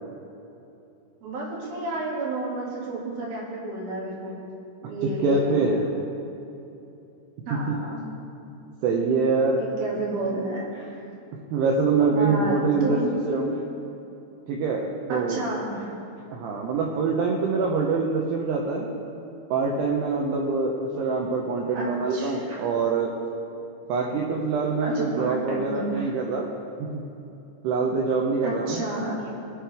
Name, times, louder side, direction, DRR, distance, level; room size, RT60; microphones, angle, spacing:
voice 1, 1.2-4.4 4.8-5.8 7.5-8.0 9.6-11.0 12.1-13.2 15.1-16.0 21.7-22.6 24.8-26.1 28.4-29.2, right 2 dB, 55° right, -5 dB, 3.6 m, -31 dB
voice 2, 5.2-5.8 7.5-7.7 8.8-9.6 11.5-13.0 13.3-13.6 14.5-15.4 16.3-18.9 19.5-23.1 23.9-26.5 26.8-26.9 27.6-28.8, right 4 dB, 85° right, 0 dB, 2.3 m, -24 dB
20.5 x 7.4 x 3.4 m, 2.9 s
omnidirectional pair, 5.8 m